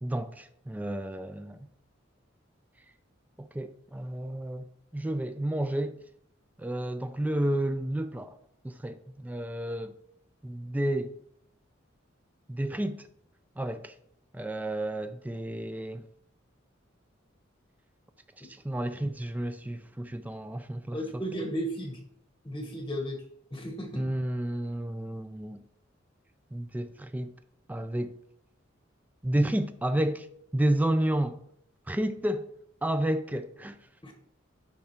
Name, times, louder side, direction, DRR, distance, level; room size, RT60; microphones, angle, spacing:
voice 1, 0.0-1.6 3.4-6.0 6.6-8.4 8.6-9.9 10.4-11.2 12.5-13.1 13.6-13.9 14.3-16.1 18.4-21.2 23.9-25.6 26.5-27.3 27.7-28.1 29.2-30.3 30.5-31.4 31.9-32.5 32.8-33.8, right 1 dB, 10° right, 0.3 m, -31 dB
voice 2, 20.9-22.0 22.4-23.2 23.5-24.0 34.0-34.1, equal, 20° left, 0.9 m, -34 dB
10.5 x 3.5 x 4.3 m
head